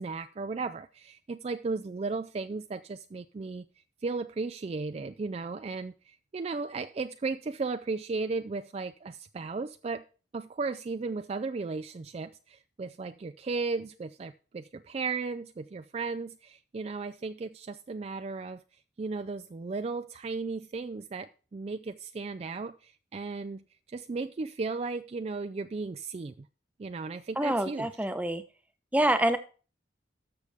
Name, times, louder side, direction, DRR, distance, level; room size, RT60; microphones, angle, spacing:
voice 1, 0.0-3.7 4.0-10.1 10.3-18.6 19.0-26.5 26.8-27.9, right 4 dB, 35° right, 0.3 m, -35 dB
voice 2, 27.4-28.4 28.9-29.4, right 1 dB, 10° right, 0.8 m, -26 dB
13.0 x 6.6 x 3.5 m
head